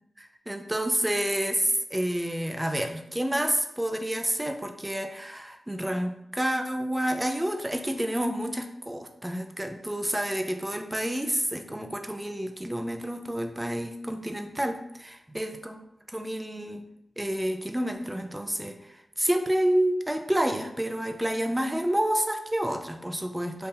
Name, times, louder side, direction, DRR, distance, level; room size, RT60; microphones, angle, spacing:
voice 1, 0.2-15.8 16.1-16.8 17.2-18.8 19.2-23.7, right 1 dB, 15° right, 5 dB, 0.5 m, -29 dB
3.8 x 2.7 x 2.6 m, 0.80 s
cardioid pair, 45°, 0 cm